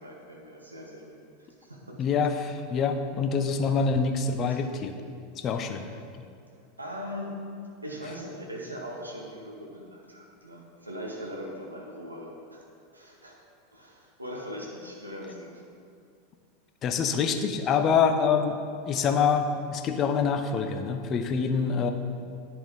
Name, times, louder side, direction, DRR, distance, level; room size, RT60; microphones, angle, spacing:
voice 1, 0.0-2.0 4.5-4.6 5.7-5.9 6.8-7.4 7.8-12.6 12.9-13.4 13.7-15.6, equal, 90° right, -1 dB, 1.4 m, -40 dB
voice 2, 2.0-5.0 5.4-5.9 16.8-18.6 18.9-21.9, left 6 dB, 35° left, 7 dB, 0.7 m, -25 dB
10.0 x 6.9 x 3.8 m, 2.3 s
figure-of-eight pair, 85°, 0 cm